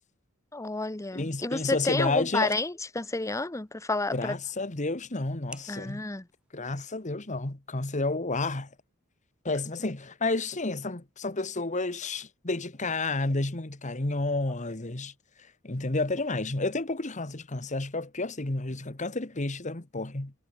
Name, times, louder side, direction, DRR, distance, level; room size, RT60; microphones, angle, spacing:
voice 1, 0.5-4.4 5.7-6.3, left 2 dB, 15° left, 0.7 m, -30 dB
voice 2, 1.1-2.5 4.1-6.0 6.5-8.7 9.4-15.1 15.6-20.3, left 2 dB, 35° left, 1.5 m, -30 dB
sound 1, 1.2-7.2, right 1 dB, 5° right, 7.0 m, -56 dB
head